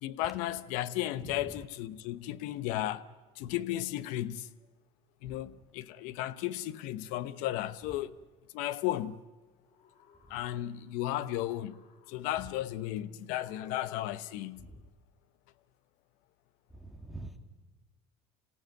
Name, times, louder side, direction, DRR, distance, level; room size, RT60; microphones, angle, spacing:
voice 1, 0.0-3.0 3.3-4.5 5.2-8.1 8.5-9.2 10.3-14.7, left 14 dB, 75° left, 0.9 m, -34 dB
voice 2, 1.2-1.6 3.4-3.5 5.2-5.4 10.2-10.4 14.6-14.8 16.7-17.4, right 2 dB, ahead, 2.3 m, -46 dB
sound 1, 9.5-11.0 11.3-12.6 13.3-14.6, left 6 dB, 55° left, 2.4 m, -62 dB
26.5 x 16.0 x 9.3 m
supercardioid pair, 115°, 13 cm